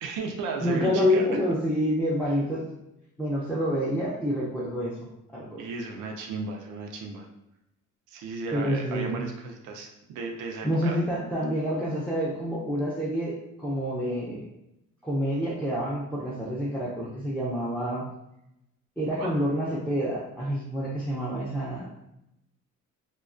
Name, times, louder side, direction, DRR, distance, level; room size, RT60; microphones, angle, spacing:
voice 1, 0.0-1.2 5.6-7.3 8.1-11.0 19.2-19.3, right 4 dB, 90° right, 2 dB, 0.5 m, -35 dB
voice 2, 0.6-2.7 3.2-5.7 8.5-9.2 10.6-14.5 15.0-18.1 19.0-22.0, equal, 5° left, -7 dB, 0.4 m, -28 dB
2.2 x 2.2 x 2.4 m, 0.84 s
cardioid pair, 90°, 30 cm